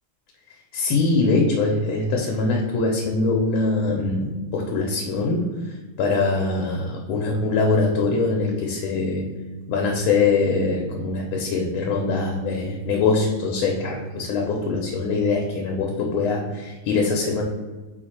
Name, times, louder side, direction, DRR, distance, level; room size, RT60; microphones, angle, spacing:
voice 1, 0.7-9.3 9.7-17.4, left 3 dB, 90° left, 0 dB, 1.4 m, -23 dB
4.4 x 2.5 x 4.2 m, 1.3 s
omnidirectional pair, 2.2 m